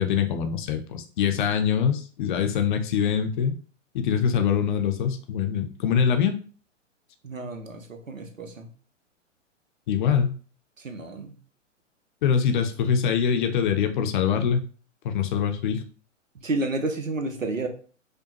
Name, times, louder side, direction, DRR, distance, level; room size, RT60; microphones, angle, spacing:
voice 1, 0.0-3.6 3.9-6.4 9.9-10.4 12.2-14.7 15.0-15.8, left 7 dB, 40° left, 7 dB, 0.6 m, -24 dB
voice 2, 7.2-8.7 10.8-11.3 16.3-17.7, right 2 dB, 85° right, 5 dB, 0.9 m, -30 dB
5.0 x 2.2 x 2.9 m, 0.41 s
figure-of-eight pair, 110°, 38 cm